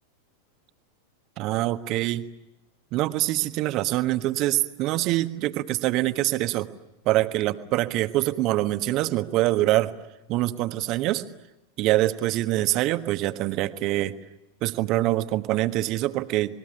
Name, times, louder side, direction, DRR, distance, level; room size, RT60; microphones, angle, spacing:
voice 1, 1.4-2.2 2.9-6.7 7.0-9.9 10.3-11.2 11.8-14.2 14.6-16.6, right 16 dB, 40° right, 10 dB, 1.4 m, -24 dB
27.5 x 20.5 x 9.9 m, 0.96 s
figure-of-eight pair, 90°, 0 cm